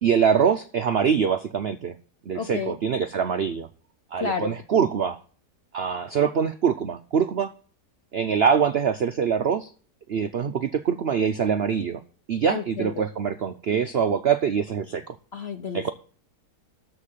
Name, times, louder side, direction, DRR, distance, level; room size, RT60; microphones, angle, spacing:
voice 1, 0.0-2.0 2.3-3.7 4.1-5.2 5.7-7.5 8.1-9.7 10.1-12.0 12.3-15.2 15.7-15.9, right 7 dB, 70° right, 9 dB, 0.6 m, -24 dB
voice 2, 2.3-2.7 4.2-4.6 12.5-13.1 15.3-15.9, left 6 dB, 55° left, 8 dB, 0.7 m, -31 dB
13.0 x 4.6 x 7.3 m, 0.42 s
omnidirectional pair, 1.8 m